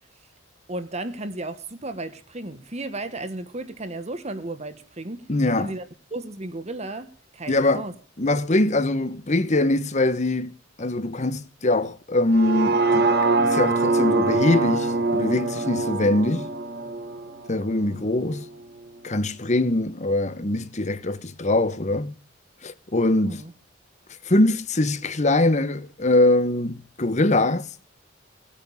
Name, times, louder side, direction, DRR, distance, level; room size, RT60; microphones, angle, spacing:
voice 1, 0.7-5.3 5.6-5.8 6.1-7.9 23.2-23.5, right 2 dB, 35° right, 1.3 m, -34 dB
voice 2, 5.3-5.7 7.5-7.9 8.2-10.5 10.8-13.1 13.4-16.5 17.5-18.5 19.0-22.2 22.6-23.4 24.2-27.7, left 2 dB, 35° left, 1.0 m, -22 dB
sound 1, 12.3-18.4 18.9-19.0, right 3 dB, 50° right, 1.5 m, -24 dB
18.5 x 8.6 x 7.1 m
head